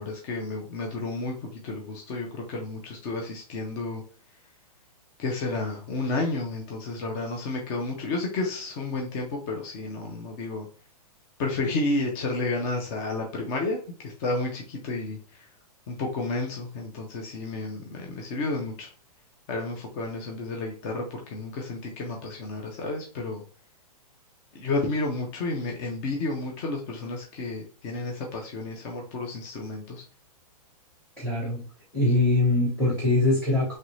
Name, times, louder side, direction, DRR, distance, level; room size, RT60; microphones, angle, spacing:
voice 1, 0.0-4.0 5.2-10.7 11.4-15.5 15.9-18.9 19.5-23.4 24.5-30.0, left 3 dB, 25° left, 1 dB, 0.4 m, -31 dB
voice 2, 31.2-31.6 31.9-33.8, left 2 dB, 5° left, -8 dB, 1.0 m, -23 dB
3.1 x 2.5 x 3.0 m, 0.41 s
hypercardioid pair, 155°, 20 cm